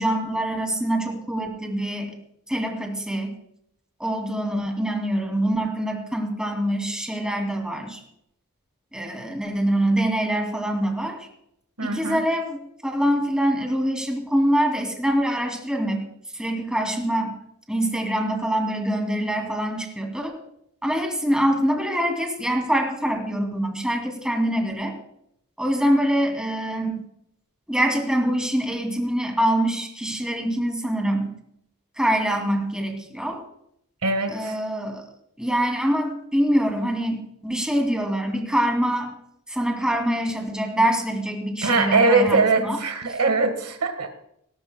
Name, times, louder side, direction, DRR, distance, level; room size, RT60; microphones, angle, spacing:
voice 1, 0.0-2.2 2.5-3.3 4.0-8.0 8.9-11.3 11.8-16.0 16.3-17.4 17.7-20.3 20.8-25.0 25.6-27.0 27.7-31.3 32.0-33.4 34.3-35.0 35.4-39.1 39.5-42.8, right 1 dB, 5° right, 2 dB, 2.5 m, -24 dB
voice 2, 11.8-12.2 34.0-34.5 41.6-44.1, right 3 dB, 85° right, 7 dB, 1.6 m, -21 dB
18.5 x 18.0 x 2.2 m, 0.74 s
head